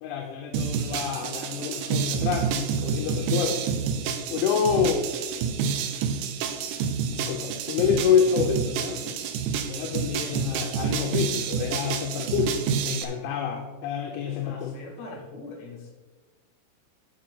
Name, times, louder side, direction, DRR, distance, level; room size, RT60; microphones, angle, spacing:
voice 1, 0.0-3.7 4.3-5.0 7.1-9.1 9.7-14.7, left 7 dB, 80° left, 3 dB, 3.0 m, -27 dB
sound 1, 0.5-13.1, right 6 dB, 85° right, 3.2 m, -29 dB
voice 2, 14.4-15.9, left 2 dB, 65° left, -1 dB, 4.3 m, -42 dB
11.0 x 6.2 x 3.9 m, 1.3 s
omnidirectional pair, 5.7 m